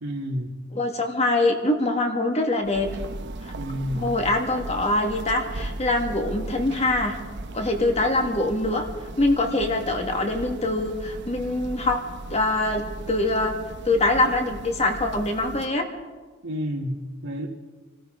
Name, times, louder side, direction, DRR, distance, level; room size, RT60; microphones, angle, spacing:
voice 1, 0.0-0.6 3.5-4.1 16.4-17.5, equal, 80° right, 1.8 m, -30 dB
voice 2, 0.7-2.9 4.0-7.2 7.5-8.8 9.2-12.0 12.3-12.8 13.1-13.5 13.8-15.8, left 2 dB, 30° left, 1.8 m, -23 dB
sound 1, 2.6-15.7, right 2 dB, 55° right, 0.9 m, -37 dB
27.0 x 13.5 x 3.8 m
head